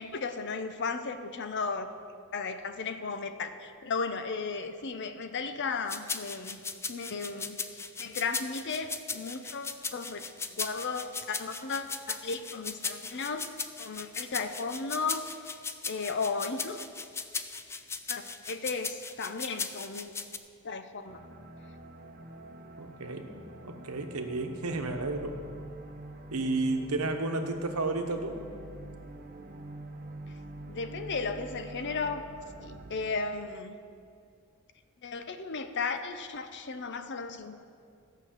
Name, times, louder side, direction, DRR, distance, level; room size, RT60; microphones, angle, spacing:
voice 1, 0.0-1.9 2.3-6.6 6.9-10.2 10.5-13.5 13.8-15.5 15.9-16.8 18.1-20.1 20.6-21.2 30.7-32.3 32.6-33.8 35.0-37.6, left 4 dB, 55° left, 9 dB, 0.7 m, -35 dB
sound 1, 5.9-20.4, left 4 dB, 10° left, 0.3 m, -37 dB
sound 2, 21.1-33.1, right 2 dB, 40° right, 0.8 m, -46 dB
voice 2, 22.8-23.3 23.6-25.4 26.3-28.3, right 2 dB, 90° right, 5 dB, 1.0 m, -32 dB
13.5 x 5.9 x 7.4 m, 2.3 s
head